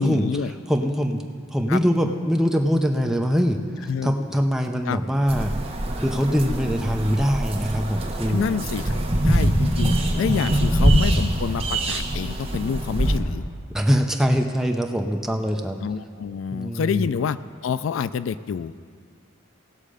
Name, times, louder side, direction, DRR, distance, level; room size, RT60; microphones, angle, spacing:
voice 1, 0.0-0.5 1.7-1.8 3.9-4.1 4.9-5.0 8.3-9.0 9.2-13.5 15.8-18.7, left 6 dB, 75° left, 14 dB, 0.3 m, -27 dB
voice 2, 0.7-5.5 6.0-8.4 10.7-10.9 13.7-15.8 16.5-17.1, equal, ahead, 3 dB, 0.6 m, -23 dB
sound 1, 5.3-13.2, right 1 dB, 30° right, 1.1 m, -23 dB
18.0 x 6.4 x 4.9 m, 2.2 s
head